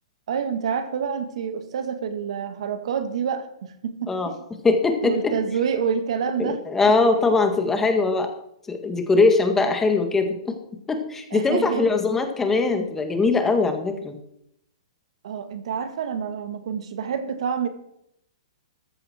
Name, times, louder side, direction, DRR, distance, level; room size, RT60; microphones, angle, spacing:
voice 1, 0.3-4.4 5.0-6.6 7.1-7.2 11.3-11.9 15.2-17.7, right 7 dB, 65° right, 8 dB, 2.1 m, -28 dB
voice 2, 4.6-5.3 6.4-8.3 8.7-10.5 10.9-14.2, left 3 dB, 10° left, 6 dB, 1.8 m, -21 dB
14.5 x 12.5 x 4.5 m, 0.74 s
hypercardioid pair, 150°, 3 cm